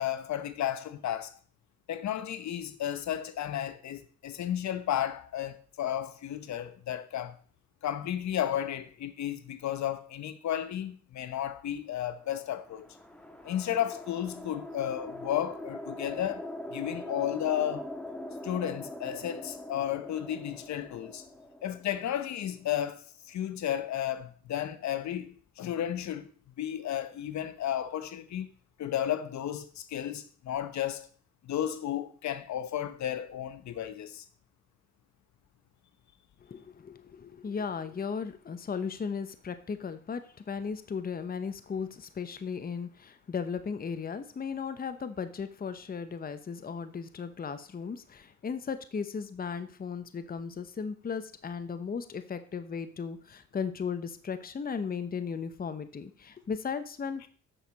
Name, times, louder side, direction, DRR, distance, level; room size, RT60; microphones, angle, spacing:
voice 1, 0.0-1.4 1.9-7.4 7.8-12.8 13.4-17.9 18.4-21.2 21.6-26.3 26.6-28.5 28.8-31.1 31.4-34.2, left 11 dB, 65° left, 1.0 m, -33 dB
sound 1, 12.2-22.7, left 1 dB, 5° left, 1.5 m, -42 dB
voice 2, 36.4-57.3, left 6 dB, 30° left, 0.9 m, -36 dB
9.0 x 6.5 x 5.3 m
cardioid pair, 90°, 30 cm